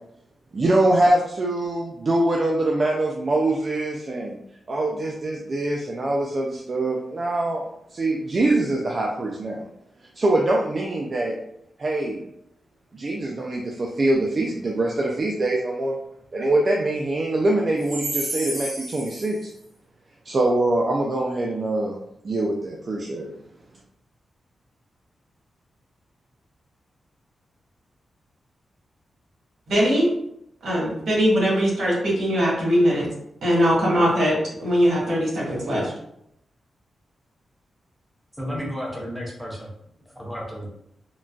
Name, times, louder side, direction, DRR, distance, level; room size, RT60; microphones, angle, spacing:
voice 1, 0.5-4.4 4.7-7.6 7.9-9.7 10.2-11.4 11.8-12.2 12.9-16.0 16.3-19.5 20.3-22.0 22.2-23.3, right 2 dB, 35° right, -1 dB, 0.3 m, -23 dB
voice 2, 18.3-18.7 29.7-30.1 30.6-33.1 33.4-34.3 34.6-35.9, equal, 75° right, -5 dB, 1.4 m, -21 dB
voice 3, 38.3-39.7 40.2-40.7, equal, 5° right, -3 dB, 0.6 m, -32 dB
3.7 x 2.2 x 2.3 m, 0.77 s
wide cardioid pair, 145°, 0 cm